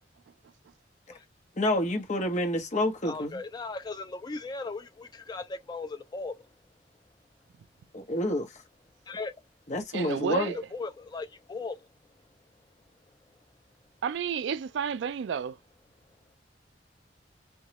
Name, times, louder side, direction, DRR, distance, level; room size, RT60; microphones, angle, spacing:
voice 1, 1.6-3.4 7.9-8.5 9.7-10.6, left 1 dB, 45° left, 0.9 m, -28 dB
voice 2, 3.0-6.3 9.1-9.3 10.7-11.8, left 3 dB, 25° left, 0.3 m, -37 dB
voice 3, 9.9-10.6 14.0-15.6, right 7 dB, 80° right, 0.3 m, -31 dB
3.0 x 2.2 x 2.9 m
head